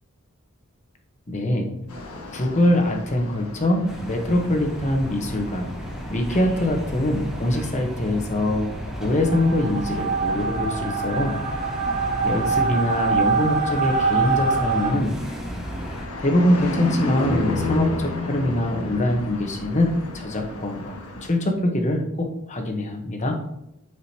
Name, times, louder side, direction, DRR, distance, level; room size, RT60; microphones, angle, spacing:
voice 1, 1.3-1.7 2.3-5.7 6.1-11.4 12.2-15.4 16.2-21.0 21.2-23.4, left 1 dB, 35° left, 3 dB, 1.1 m, -23 dB
sound 1, 1.9-21.3, left 2 dB, 90° left, 1.4 m, -34 dB
sound 2, 3.9-16.1, equal, ahead, 1.2 m, -34 dB
sound 3, 9.2-14.9, right 4 dB, 40° right, 1.5 m, -24 dB
12.5 x 5.0 x 2.9 m, 0.83 s
head